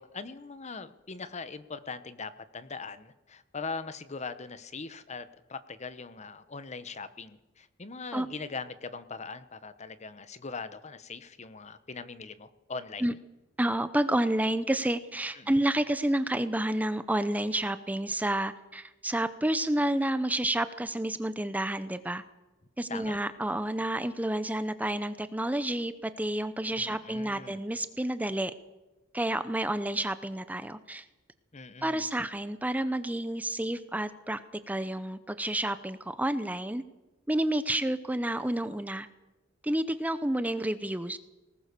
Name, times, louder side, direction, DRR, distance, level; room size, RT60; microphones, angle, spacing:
voice 1, 0.0-13.1 15.3-15.6 22.9-23.2 26.8-27.6 31.5-32.1, left 4 dB, 35° left, 13 dB, 0.9 m, -41 dB
voice 2, 13.6-22.2 22.8-28.5 29.1-31.1 31.8-34.4 34.7-36.8 37.3-39.1 39.6-41.2, right 1 dB, 10° right, 12 dB, 0.6 m, -30 dB
21.0 x 19.0 x 6.8 m, 1.1 s
head